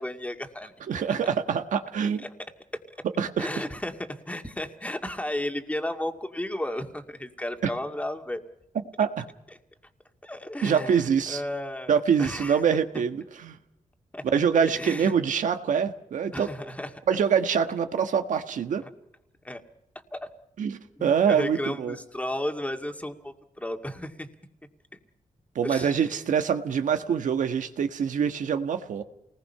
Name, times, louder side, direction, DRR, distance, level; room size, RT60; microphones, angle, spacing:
voice 1, 0.0-0.7 2.2-2.3 3.4-8.4 10.2-12.6 14.1-14.2 14.8-15.2 16.3-16.9 18.8-18.9 19.4-19.6 20.1-20.3 21.0-24.3 24.9-25.0 25.6-26.1, left 1 dB, 10° left, 5 dB, 2.2 m, -33 dB
voice 2, 0.9-2.2 3.2-3.5 9.0-9.3 10.6-11.4 11.9-13.6 14.3-16.5 17.1-18.8 20.6-22.0 25.5-29.0, right 7 dB, 80° right, 8 dB, 1.5 m, -25 dB
28.5 x 20.0 x 5.7 m, 0.85 s
cardioid pair, 85°, 13 cm